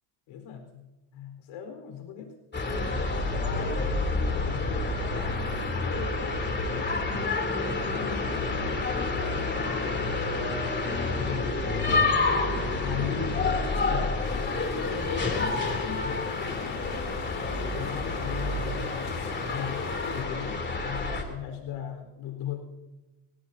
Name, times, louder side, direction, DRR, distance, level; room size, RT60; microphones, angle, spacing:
voice 1, 0.3-0.8 1.1-2.3 3.4-10.0 11.1-11.6 12.8-14.2 14.9-16.9 17.4-22.6, left 8 dB, 90° left, 4 dB, 4.4 m, -38 dB
sound 1, 2.5-21.2, left 3 dB, 20° left, 3.1 m, -29 dB
sound 2, 14.2-20.2, left 7 dB, 50° left, 1.9 m, -40 dB
26.5 x 17.5 x 2.8 m, 1.1 s
cardioid pair, 115°, 47 cm